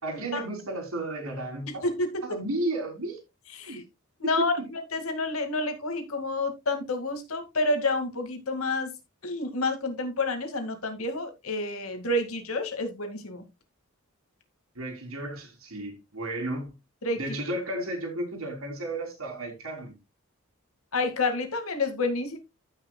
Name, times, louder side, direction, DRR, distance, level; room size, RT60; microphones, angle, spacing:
voice 1, 0.0-1.8 2.2-3.2 3.7-3.8 4.6-4.7 14.8-16.8 17.1-20.0, right 1 dB, 80° right, 3.6 m, -33 dB
voice 2, 1.7-2.4 3.5-3.8 4.2-8.9 9.2-13.4 17.0-17.2 20.9-22.4, left 2 dB, 85° left, 2.1 m, -29 dB
15.0 x 5.9 x 2.3 m
head